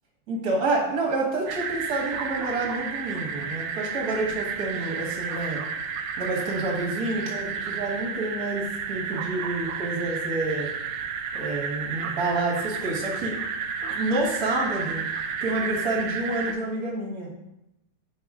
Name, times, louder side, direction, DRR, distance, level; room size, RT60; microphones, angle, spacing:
voice 1, 0.3-5.6 6.2-10.7 11.3-13.4 13.9-15.0 15.4-17.3, right 2 dB, 60° right, 0 dB, 1.8 m, -28 dB
sound 1, 1.5-16.5, right 6 dB, 85° right, 1.3 m, -32 dB
5.3 x 5.0 x 3.6 m, 0.87 s
omnidirectional pair, 1.9 m